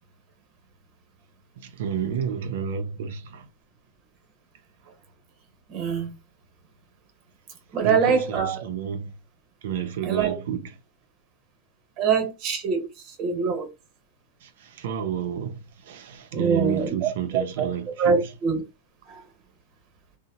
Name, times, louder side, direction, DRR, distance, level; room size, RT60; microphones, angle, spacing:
voice 1, 1.6-3.5 7.8-9.1 9.6-10.8 14.4-18.3, right 8 dB, 70° right, 0.4 m, -31 dB
voice 2, 5.7-6.1 7.7-8.6 10.0-10.3 12.0-13.7 16.3-17.7 18.0-18.6 19.1-19.2, right 6 dB, 35° right, 0.9 m, -24 dB
2.7 x 2.0 x 2.7 m
supercardioid pair, 150°, 0 cm